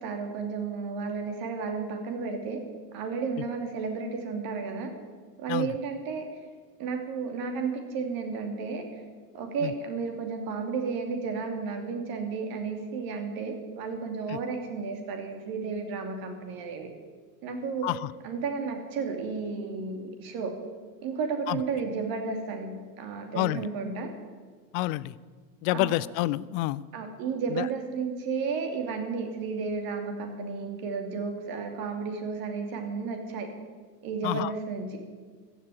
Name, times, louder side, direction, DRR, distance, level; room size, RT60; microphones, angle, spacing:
voice 1, 0.0-2.6 2.9-4.9 5.4-6.3 6.8-8.9 9.3-16.9 17.4-17.9 18.2-20.6 21.0-24.1 25.7-26.0 26.9-33.5 34.0-35.0, right 5 dB, 45° right, 5 dB, 2.8 m, -33 dB
voice 2, 24.7-25.1 25.6-26.8 27.5-27.7 34.2-34.5, left 17 dB, 35° left, 20 dB, 0.4 m, -28 dB
15.0 x 7.0 x 9.6 m, 1.5 s
figure-of-eight pair, 80°, 49 cm